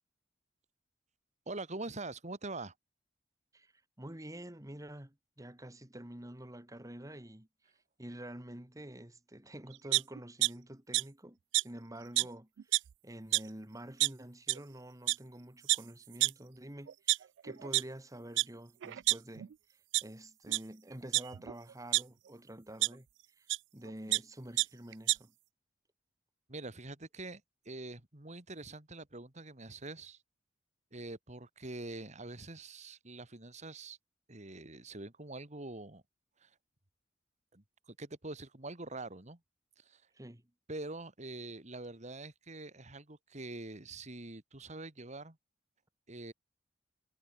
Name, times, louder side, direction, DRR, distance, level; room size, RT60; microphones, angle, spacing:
voice 1, 1.5-2.7 26.5-27.4 27.7-30.2 30.9-34.0 34.3-36.0 36.4-36.5 37.5-39.4 39.9-40.0 40.7-45.4 46.1-46.3, right 2 dB, 40° right, 2.5 m, -44 dB
voice 2, 4.0-7.5 8.0-12.7 13.0-23.1 23.4-23.5 23.7-25.3 40.1-40.4, right 1 dB, 20° right, 2.1 m, -48 dB
sound 1, 9.9-10.5 10.9-11.0 11.5-11.6 12.2-12.3 12.6-12.9 13.3-13.4 14.0-14.1 14.5-14.6 15.1-15.2 15.7-15.8 16.2-16.3 16.9-17.8 18.4-18.5 18.8-19.5 19.9-20.0 20.5-20.6 21.1-22.0 22.8-22.9 23.5-23.6 23.9-24.2 24.6-24.7 24.9-25.2, right 19 dB, 70° right, 0.3 m, -28 dB
head